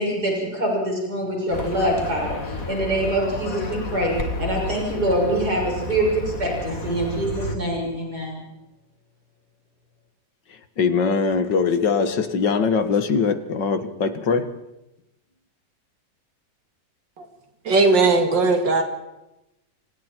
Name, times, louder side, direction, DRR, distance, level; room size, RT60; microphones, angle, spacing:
voice 1, 0.0-8.5, right 1 dB, 60° right, -2 dB, 7.2 m, -25 dB
Livestock farm animals working animals, 1.5-7.6, left 2 dB, 50° left, 2.8 m, -31 dB
voice 2, 10.5-14.5, left 5 dB, 75° left, 9 dB, 2.3 m, -22 dB
voice 3, 17.6-18.8, right 3 dB, 90° right, 5 dB, 2.9 m, -18 dB
29.5 x 25.5 x 4.6 m, 0.94 s
omnidirectional pair, 1.9 m